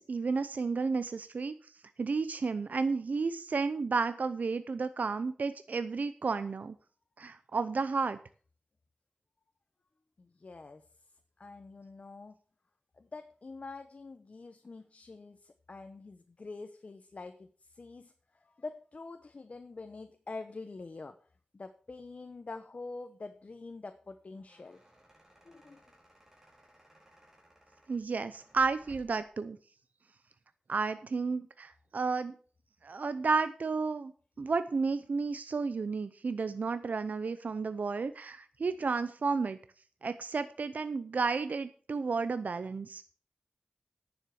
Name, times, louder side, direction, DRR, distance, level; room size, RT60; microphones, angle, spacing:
voice 1, 0.0-1.7 2.0-6.7 7.2-8.2 27.9-29.6 30.7-32.3 32.8-34.1 34.4-39.6 40.0-43.0, right 4 dB, 75° right, 11 dB, 0.6 m, -32 dB
voice 2, 10.2-10.9 11.4-12.4 12.9-21.2 21.5-24.8 25.4-25.8, left 3 dB, 55° left, 7 dB, 0.9 m, -46 dB
sound 1, 24.1-29.3, right 1 dB, 15° right, 4.5 m, -60 dB
10.0 x 7.2 x 6.4 m, 0.43 s
wide cardioid pair, 80°, 3 cm